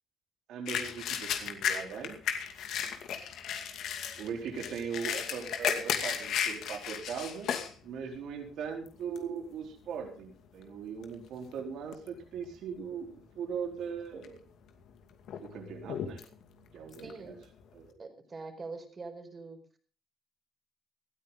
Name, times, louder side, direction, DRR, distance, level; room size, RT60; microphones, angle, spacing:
voice 1, 0.5-2.2 4.2-7.5 7.8-14.4 15.4-16.2 16.7-17.4 17.7-18.1, right 6 dB, 80° right, 3 dB, 4.2 m, -39 dB
Opening pill bottle and swallowing pill, 0.7-7.7 8.2-8.3 8.9-9.2 10.0-10.1 10.4-11.6 11.9-12.5 12.8-12.9 13.8-14.4 14.8-17.9, left 8 dB, 80° left, 2.4 m, -35 dB
voice 2, 17.0-17.4 18.0-19.6, right 3 dB, 35° right, 6 dB, 4.5 m, -43 dB
18.5 x 13.5 x 3.9 m, 0.39 s
cardioid pair, 90°, 0 cm